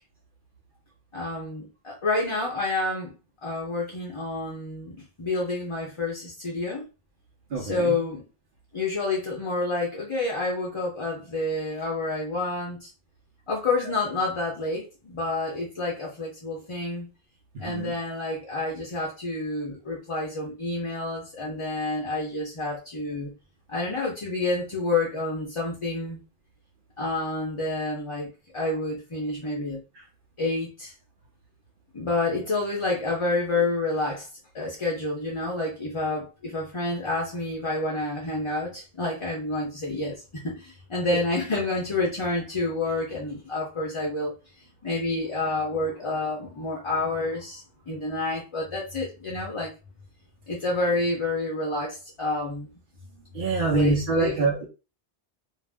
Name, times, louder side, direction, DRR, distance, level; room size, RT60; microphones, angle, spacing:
voice 1, 1.1-3.1 3.4-6.8 7.6-8.3 8.7-12.9 13.5-17.1 17.6-23.3 23.7-26.2 27.0-29.8 30.4-30.9 31.9-34.3 34.5-44.3 44.8-49.7 50.5-52.7 53.7-54.3, left 2 dB, 35° left, 0.6 m, -29 dB
voice 2, 7.5-7.9 13.8-13.9 17.5-17.9 30.0-30.1 53.3-54.7, right 3 dB, 60° right, 0.8 m, -25 dB
2.5 x 2.0 x 3.4 m
omnidirectional pair, 1.0 m